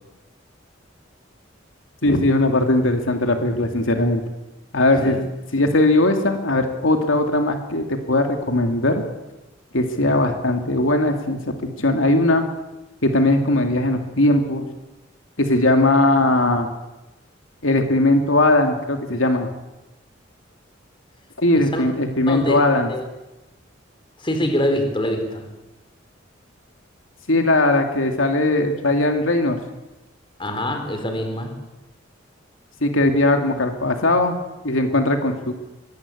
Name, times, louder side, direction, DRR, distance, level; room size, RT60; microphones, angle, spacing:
voice 1, 2.0-4.2 4.7-9.0 9.7-12.4 13.0-14.7 15.4-16.7 17.6-19.5 21.4-22.9 27.3-29.6 32.8-34.4 34.6-35.5, left 2 dB, 90° left, 5 dB, 2.6 m, -19 dB
voice 2, 22.3-23.1 24.2-25.5 30.4-31.5, left 1 dB, 25° left, 5 dB, 4.2 m, -24 dB
23.5 x 19.0 x 8.6 m, 1.0 s
head